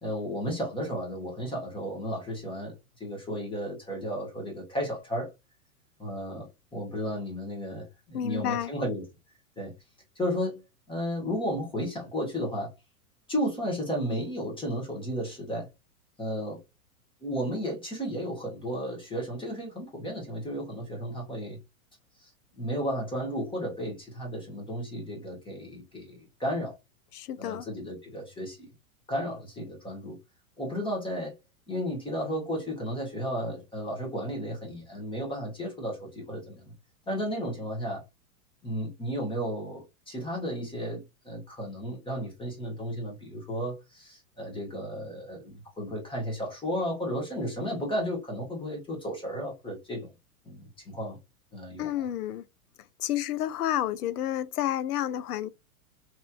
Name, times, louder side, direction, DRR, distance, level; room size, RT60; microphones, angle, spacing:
voice 1, 0.0-5.3 6.0-9.1 9.6-9.7 10.1-10.6 10.9-12.7 13.3-15.7 16.2-16.6 17.2-21.6 22.2-22.3 22.6-26.8 27.3-28.7 29.1-30.2 30.6-31.3 31.7-36.7 37.1-38.0 38.6-50.1 50.4-51.2 51.5-51.9, equal, 10° left, 1.4 m, -33 dB
voice 2, 8.1-8.7 27.1-27.7 51.8-52.5 53.0-55.5, left 11 dB, 80° left, 0.5 m, -30 dB
3.1 x 3.0 x 2.3 m
hypercardioid pair, 115°, 44 cm